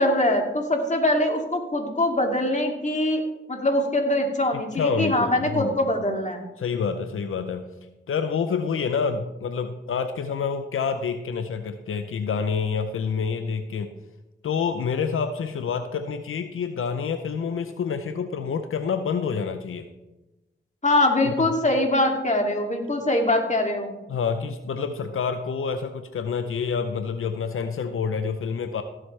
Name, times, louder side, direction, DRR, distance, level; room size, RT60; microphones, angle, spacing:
voice 1, 0.0-3.2 3.5-6.4 20.8-24.0, left 1 dB, 35° left, 2 dB, 2.5 m, -23 dB
voice 2, 4.7-5.8 6.6-7.7 8.1-13.9 14.4-19.9 21.2-21.5 24.1-28.8, left 6 dB, 90° left, 8 dB, 0.6 m, -27 dB
16.5 x 7.8 x 3.3 m, 1.0 s
cardioid pair, 45°, 21 cm